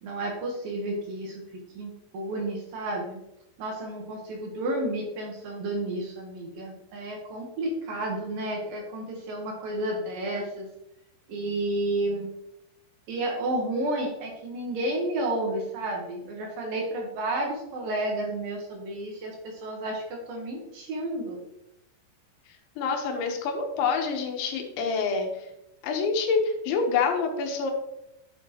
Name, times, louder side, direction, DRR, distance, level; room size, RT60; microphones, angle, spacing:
voice 1, 0.0-3.2 3.6-10.7 11.3-12.3 13.1-21.4, right 1 dB, 65° right, 1 dB, 2.6 m, -31 dB
voice 2, 22.8-25.5 25.8-27.7, left 5 dB, 90° left, 3 dB, 3.5 m, -27 dB
9.9 x 7.0 x 3.0 m, 0.84 s
omnidirectional pair, 5.1 m